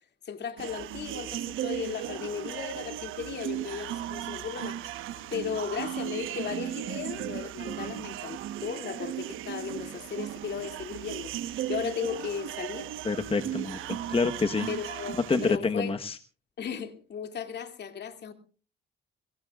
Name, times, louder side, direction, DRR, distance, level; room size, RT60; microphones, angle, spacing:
voice 1, 0.2-4.8 5.3-12.9 14.7-16.0 16.6-18.3, left 7 dB, 60° left, 2.6 m, -36 dB
sound 1, 0.6-15.6, right 12 dB, 90° right, 1.2 m, -36 dB
voice 2, 13.0-14.7 15.3-16.2, left 4 dB, 30° left, 1.2 m, -27 dB
23.0 x 21.0 x 2.4 m
cardioid pair, 90°, 20 cm